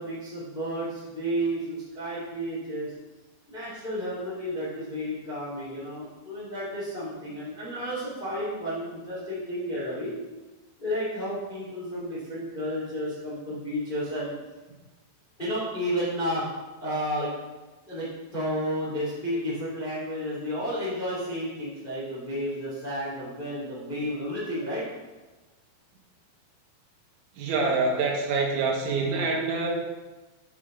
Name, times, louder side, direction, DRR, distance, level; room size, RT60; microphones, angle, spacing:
voice 1, 0.0-2.9 3.5-10.2 10.8-14.3 15.4-16.4 16.8-17.3 17.9-24.8, equal, 80° left, -8 dB, 0.4 m, -32 dB
voice 2, 27.3-29.7, right 3 dB, 70° right, -1 dB, 3.5 m, -26 dB
7.9 x 7.1 x 3.8 m, 1.2 s
omnidirectional pair, 6.0 m